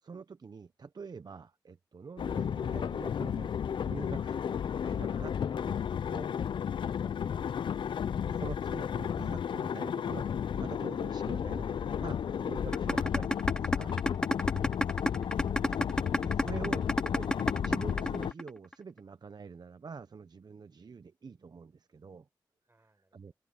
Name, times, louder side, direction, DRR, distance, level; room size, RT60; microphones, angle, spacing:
voice 1, 0.0-3.5 3.8-6.4 8.2-10.3 10.5-14.0 15.6-17.4 17.6-22.3 23.1-23.3, right 5 dB, 55° right, 0.8 m, -46 dB
sound 1, 2.2-18.3, left 8 dB, 75° left, 0.4 m, -33 dB
sound 2, 12.7-18.7, left 1 dB, 10° left, 0.4 m, -28 dB
voice 2, 22.7-23.4, right 2 dB, 25° right, 7.2 m, -69 dB
open air
cardioid pair, 50°, 8 cm